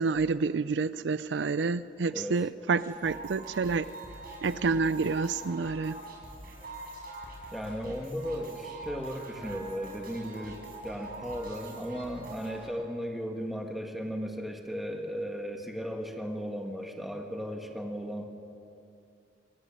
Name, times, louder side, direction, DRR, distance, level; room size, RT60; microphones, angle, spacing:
voice 1, 0.0-3.9 4.4-6.0, right 4 dB, 80° right, 15 dB, 0.5 m, -28 dB
voice 2, 2.1-2.4 7.5-18.3, equal, ahead, 2 dB, 1.7 m, -36 dB
sound 1, 2.8-12.7, right 2 dB, 60° right, 5.1 m, -44 dB
26.5 x 14.5 x 7.7 m, 2.7 s
head